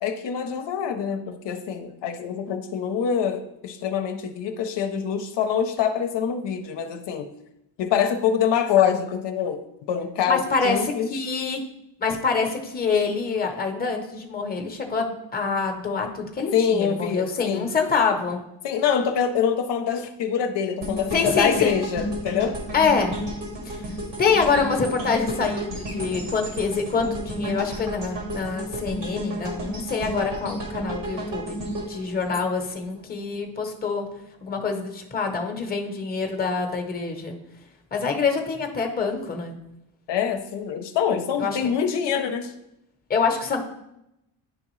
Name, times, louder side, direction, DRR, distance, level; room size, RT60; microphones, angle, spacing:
voice 1, 0.0-7.3 7.8-9.6 9.9-11.1 16.5-17.7 18.6-22.6 40.1-42.5, left 8 dB, 70° left, 6 dB, 0.6 m, -25 dB
voice 2, 10.3-11.6 12.0-18.4 21.1-21.8 22.7-23.1 23.6-23.8 24.2-31.6 31.9-34.0 34.4-37.3 37.9-39.6 41.4-41.6 43.1-43.6, left 5 dB, 20° left, 3 dB, 0.8 m, -25 dB
sound 1, 20.8-33.0 33.4-33.6, equal, 75° right, 2.2 m, -32 dB
10.5 x 3.6 x 3.1 m, 0.85 s
cardioid pair, 140°, 44 cm